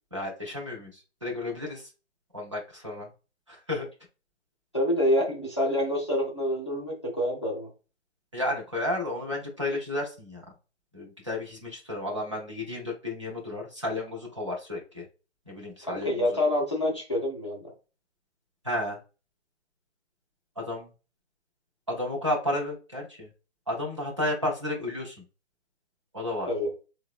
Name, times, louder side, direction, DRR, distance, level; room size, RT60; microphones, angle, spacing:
voice 1, 0.1-1.9 2.3-3.1 3.5-3.9 8.3-10.4 10.9-15.0 15.5-16.2 18.6-19.0 20.6-20.9 21.9-23.3 23.7-25.2 26.1-26.5, left 1 dB, 25° right, -2 dB, 0.5 m, -32 dB
voice 2, 4.7-7.7 15.8-17.7 26.5-26.7, left 1 dB, 25° left, -3 dB, 0.4 m, -27 dB
3.3 x 2.0 x 2.3 m, 0.33 s
hypercardioid pair, 165°, 34 cm